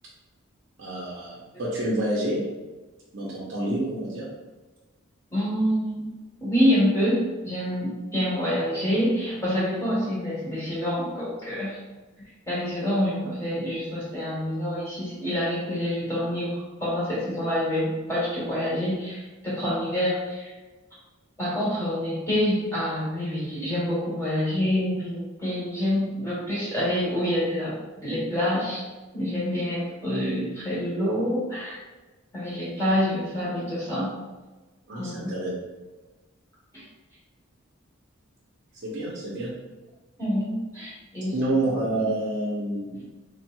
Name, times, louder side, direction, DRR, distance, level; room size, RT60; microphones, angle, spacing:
voice 1, 0.8-2.4 3.1-4.3 34.9-35.5 38.8-39.5 41.3-43.1, right 1 dB, 55° right, -7 dB, 0.6 m, -28 dB
voice 2, 5.3-6.1 6.4-11.8 12.5-20.5 21.4-28.9 29.1-31.8 32.3-34.2 35.0-35.2 36.7-36.9 40.2-41.3, equal, 15° left, -9 dB, 1.0 m, -27 dB
3.3 x 2.8 x 2.2 m, 1.2 s
head